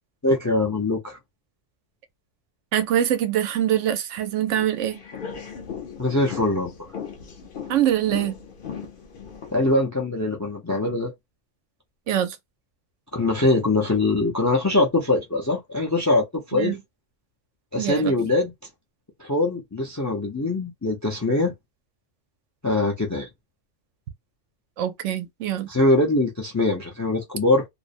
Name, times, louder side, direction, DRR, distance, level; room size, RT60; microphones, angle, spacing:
voice 1, 0.2-1.2 6.0-6.7 9.5-11.1 13.1-16.7 17.7-18.5 19.2-21.5 22.6-23.3 25.7-27.7, left 2 dB, 25° left, 0.3 m, -22 dB
voice 2, 2.7-5.0 7.7-8.4 12.1-12.4 16.5-16.8 17.8-18.3 24.8-25.7, right 11 dB, 90° right, 0.9 m, -24 dB
sound 1, 4.5-9.7, left 7 dB, 55° left, 0.7 m, -38 dB
2.5 x 2.0 x 2.5 m
omnidirectional pair, 1.2 m